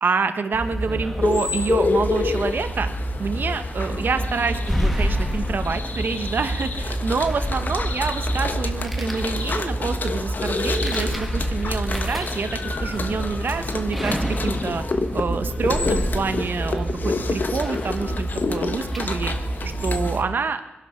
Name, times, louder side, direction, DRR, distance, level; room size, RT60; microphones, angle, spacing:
voice 1, 0.0-2.9 3.2-14.2 14.4-14.8 15.1-19.3 19.6-20.6, right 4 dB, 60° right, 9 dB, 1.2 m, -27 dB
sound 1, 0.5-20.2, right 1 dB, ahead, 1.7 m, -28 dB
sound 2, 1.2-20.2, left 4 dB, 50° left, 1.4 m, -29 dB
21.0 x 11.5 x 5.8 m, 1.1 s
cardioid pair, 80°, 4 cm